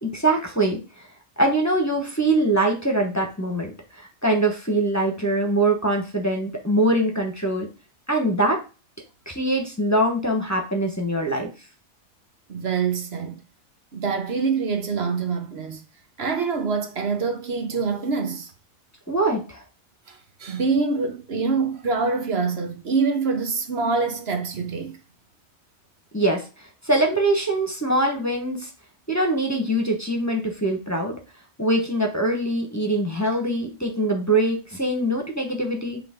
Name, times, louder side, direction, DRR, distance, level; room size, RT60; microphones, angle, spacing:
voice 1, 0.0-1.1 1.4-7.7 8.1-8.6 9.3-11.5 19.1-19.6 26.1-26.4 26.8-28.7 29.1-31.1 31.6-36.0, right 1 dB, 15° left, 1.2 m, -23 dB
voice 2, 12.5-13.4 13.9-15.8 16.2-18.5 20.1-25.0, right 4 dB, 60° right, 1.1 m, -25 dB
8.1 x 3.4 x 3.7 m
omnidirectional pair, 1.2 m